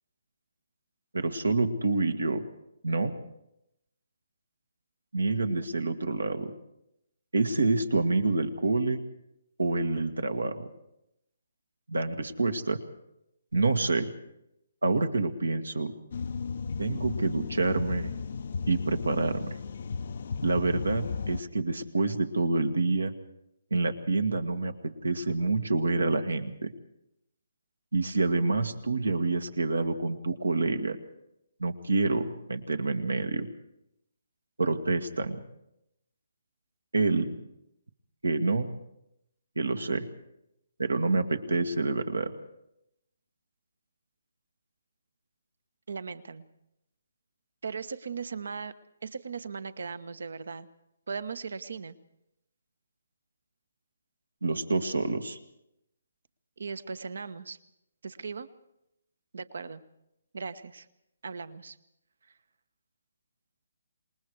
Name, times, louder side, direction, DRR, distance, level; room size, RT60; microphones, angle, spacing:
voice 1, 1.1-2.4 2.8-3.2 5.1-6.5 7.3-9.0 9.6-10.7 11.9-12.8 13.5-14.1 14.8-15.9 16.8-18.1 18.7-19.6 20.4-23.1 23.7-26.7 27.9-31.0 31.6-33.5 34.6-35.4 36.9-37.3 38.2-38.7 39.6-40.1 40.8-42.3 54.4-55.4, right 3 dB, 80° right, 7 dB, 2.0 m, -27 dB
sound 1, 16.1-21.4, left 5 dB, 55° left, 0.8 m, -35 dB
voice 2, 45.9-46.5 47.6-48.7 49.0-50.7 51.1-52.0 56.6-57.6 58.0-58.5 59.3-59.8 60.3-60.9 61.2-61.8, right 5 dB, 65° right, 13 dB, 1.2 m, -38 dB
27.0 x 20.5 x 4.8 m, 0.85 s
figure-of-eight pair, 140°, 0 cm